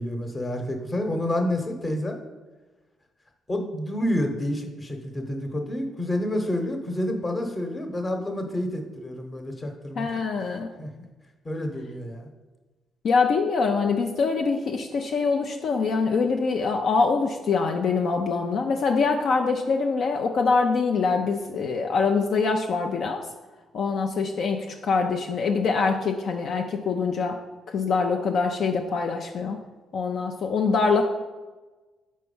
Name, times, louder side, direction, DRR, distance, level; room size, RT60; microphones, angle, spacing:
voice 1, 0.0-2.2 3.5-10.9 11.4-12.3, left 1 dB, 25° left, 4 dB, 1.0 m, -29 dB
voice 2, 10.0-10.7 13.0-23.3 23.7-27.4 27.7-29.6 29.9-31.0, left 4 dB, 60° left, 3 dB, 0.5 m, -24 dB
4.6 x 4.2 x 5.4 m, 1.2 s
cardioid pair, 90°, 0 cm